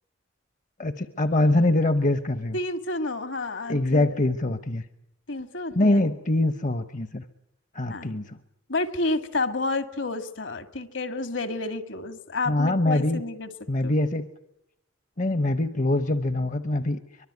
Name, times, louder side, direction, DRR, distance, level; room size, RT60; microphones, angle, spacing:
voice 1, 0.8-2.6 3.7-4.8 5.7-7.2 7.7-8.4 12.5-13.2 13.7-14.3 15.2-17.0, left 1 dB, 40° left, 11 dB, 0.9 m, -24 dB
voice 2, 2.5-4.1 5.3-6.0 7.9-8.1 8.7-13.5 13.8-13.9, left 2 dB, 65° left, 10 dB, 1.9 m, -30 dB
24.0 x 22.5 x 9.4 m, 0.81 s
head